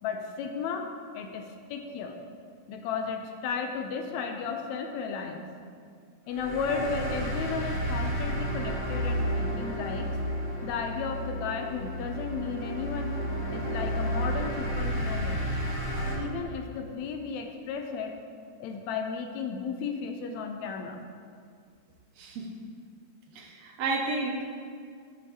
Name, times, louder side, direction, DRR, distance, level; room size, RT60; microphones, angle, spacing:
voice 1, 0.0-2.2 2.7-5.5 6.3-10.1 10.6-13.2 13.5-15.4 16.2-18.2 18.6-21.0, left 5 dB, 80° left, 4 dB, 1.8 m, -34 dB
sound 1, 6.3-16.1, equal, 30° left, 1.8 m, -31 dB
voice 2, 22.2-22.5 23.3-24.5, right 3 dB, 75° right, 0 dB, 1.8 m, -31 dB
11.5 x 5.4 x 2.8 m, 2.2 s
omnidirectional pair, 3.3 m